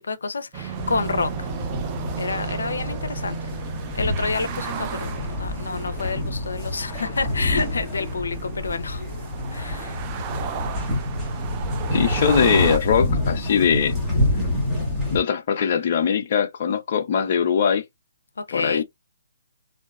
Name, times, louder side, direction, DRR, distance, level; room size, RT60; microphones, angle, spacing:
voice 1, 0.1-1.5 2.2-3.4 3.9-5.1 5.4-9.0 9.5-10.0 18.4-18.8, left 4 dB, 90° left, 0.4 m, -28 dB
sound 1, 0.5-12.8, right 8 dB, 20° right, 0.3 m, -34 dB
sound 2, 0.7-15.2, left 1 dB, ahead, 0.8 m, -28 dB
voice 2, 11.9-13.9 15.1-17.8 18.5-18.8, left 7 dB, 40° left, 0.5 m, -21 dB
2.6 x 2.1 x 2.3 m
hypercardioid pair, 165°, 0 cm